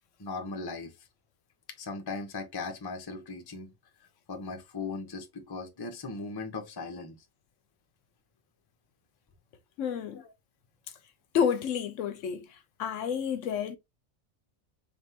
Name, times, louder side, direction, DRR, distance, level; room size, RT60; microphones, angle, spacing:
voice 1, 0.2-0.9 1.8-3.7 4.3-7.2, left 3 dB, 25° left, 0.6 m, -38 dB
voice 2, 9.8-10.2 11.3-12.5 12.8-13.8, left 7 dB, 75° left, 0.9 m, -29 dB
4.0 x 3.3 x 2.8 m
omnidirectional pair, 1.4 m